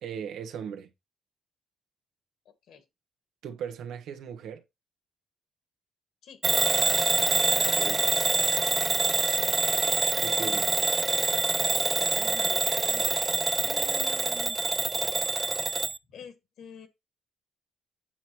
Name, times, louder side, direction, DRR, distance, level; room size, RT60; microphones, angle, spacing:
voice 1, 0.0-0.9 3.4-4.6 7.5-8.1 10.2-10.7, right 7 dB, 75° right, 1.3 m, -38 dB
voice 2, 2.4-2.8 6.2-6.4 12.0-13.2 13.6-14.6 16.1-16.9, left 6 dB, 65° left, 1.6 m, -46 dB
Bell / Alarm, 6.4-16.0, right 3 dB, 20° right, 0.4 m, -25 dB
8.8 x 6.3 x 2.9 m
cardioid pair, 140°, 0 cm